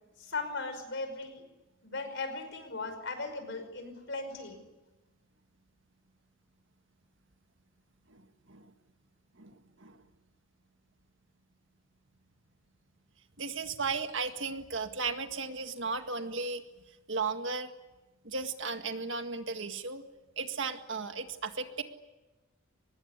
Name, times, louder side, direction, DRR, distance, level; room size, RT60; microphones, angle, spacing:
voice 1, 0.2-1.4 1.8-4.6, left 3 dB, 55° left, 8 dB, 5.4 m, -38 dB
voice 2, 8.1-8.7 9.4-10.0 13.4-16.6 17.1-17.7 18.2-20.0 20.4-21.8, right 4 dB, 60° right, 7 dB, 1.9 m, -35 dB
24.5 x 21.0 x 9.8 m, 1.1 s
head